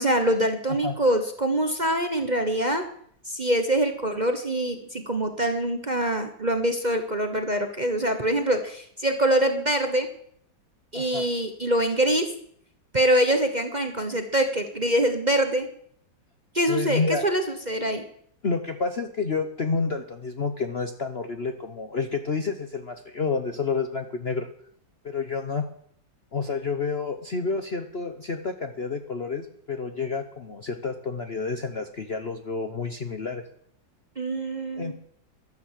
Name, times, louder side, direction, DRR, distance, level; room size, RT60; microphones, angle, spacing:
voice 1, 0.0-2.9 3.3-10.1 10.9-12.3 12.9-15.7 16.5-18.0 34.2-34.9, right 1 dB, 30° right, 6 dB, 1.1 m, -24 dB
voice 2, 10.9-11.3 16.7-17.2 18.4-24.5 25.0-25.6 26.3-33.4 34.8-34.9, left 4 dB, 45° left, 7 dB, 1.0 m, -29 dB
12.0 x 11.5 x 7.5 m, 0.64 s
omnidirectional pair, 2.0 m